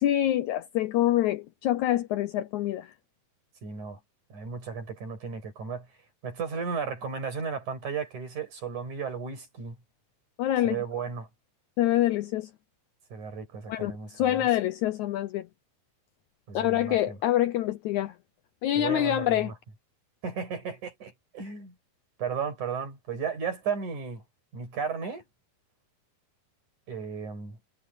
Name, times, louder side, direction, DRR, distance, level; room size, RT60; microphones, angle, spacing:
voice 1, 0.0-2.9 10.4-10.8 11.8-12.5 13.7-15.5 16.5-18.1 18.6-19.5, left 13 dB, 85° left, 1.7 m, -26 dB
voice 2, 3.6-4.0 4.3-5.9 6.2-9.8 10.6-11.3 13.1-14.5 16.5-17.2 18.7-19.5 20.2-21.7 22.2-24.2 24.5-25.2 26.9-27.6, right 6 dB, 50° right, 7.2 m, -34 dB
omnidirectional pair, 4.3 m